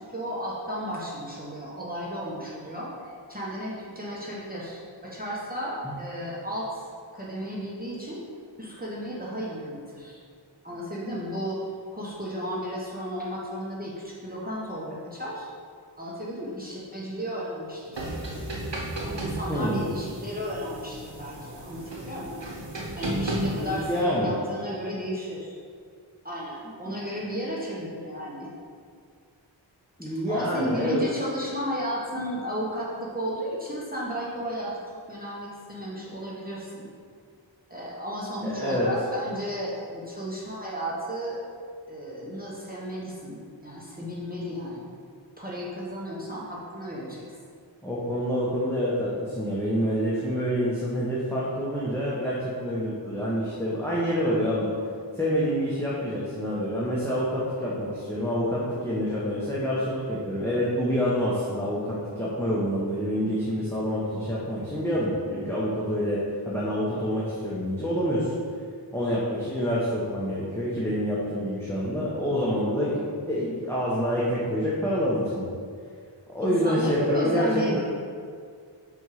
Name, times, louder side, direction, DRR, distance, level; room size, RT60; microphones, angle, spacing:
voice 1, 0.0-6.9 7.1-8.2 8.6-10.2 10.6-11.6 11.9-15.5 16.0-18.4 19.0-22.4 23.0-25.5 26.2-28.5 30.0-34.7 35.1-36.9 37.7-41.4 41.9-44.9 45.4-47.4 76.4-77.8, equal, 20° right, -6 dB, 1.1 m, -34 dB
sound 1, 17.9-24.0, right 1 dB, 70° right, 1.1 m, -34 dB
voice 2, 19.5-19.9 23.4-24.3 30.0-31.1 38.4-38.9 47.8-54.7 55.1-68.3 68.9-73.0 73.3-75.5 76.3-77.8, equal, 5° left, -8 dB, 1.1 m, -27 dB
5.5 x 4.4 x 4.8 m, 2.1 s
wide cardioid pair, 40°, 44 cm